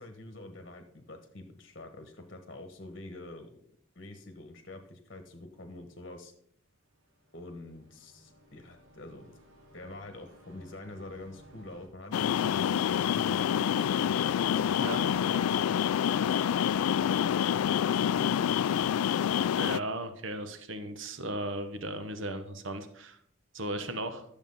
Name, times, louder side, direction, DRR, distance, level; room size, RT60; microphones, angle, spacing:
voice 1, 0.0-3.5 3.9-6.3 7.3-9.3 9.7-13.6 14.1-15.6 15.9-17.4, left 2 dB, 45° left, 6 dB, 1.2 m, -46 dB
sound 1, 6.8-11.9, equal, 80° right, 3.1 m, -58 dB
sound 2, 12.1-19.8, left 9 dB, 90° left, 0.3 m, -27 dB
voice 2, 19.5-23.2 23.5-24.2, right 1 dB, 60° right, 9 dB, 1.2 m, -36 dB
12.0 x 7.1 x 5.5 m, 0.67 s
head